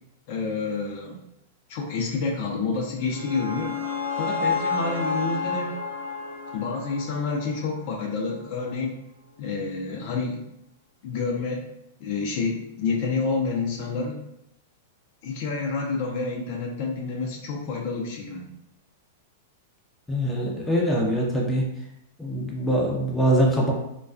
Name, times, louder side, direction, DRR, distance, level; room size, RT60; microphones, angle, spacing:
voice 1, 0.3-1.2 1.7-3.7 4.2-5.8 6.5-9.0 9.4-10.4 11.0-11.6 12.0-14.2 15.2-18.5, left 4 dB, 55° left, 0 dB, 0.5 m, -28 dB
sound 1, 2.8-7.9, left 5 dB, 85° right, 0.8 m, -30 dB
voice 2, 20.1-21.6 22.2-23.7, equal, 10° left, -3 dB, 0.6 m, -23 dB
2.3 x 2.2 x 2.4 m, 0.82 s
hypercardioid pair, 125°, 0 cm